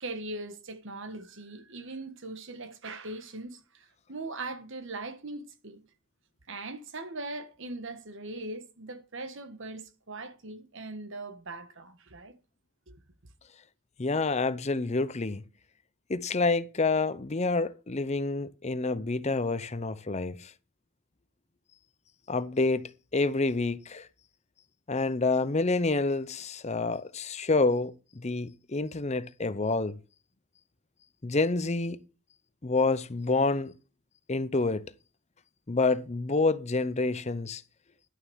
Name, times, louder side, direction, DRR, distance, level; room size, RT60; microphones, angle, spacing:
voice 1, 0.0-5.8 6.5-12.3 12.9-13.0, right 2 dB, 60° right, 1.4 m, -40 dB
voice 2, 14.0-15.4 16.1-20.5 22.3-24.1 24.9-30.0 31.2-32.0 32.6-33.7 34.3-34.9 35.7-37.6, left 3 dB, 30° left, 0.7 m, -28 dB
11.5 x 6.7 x 6.2 m
head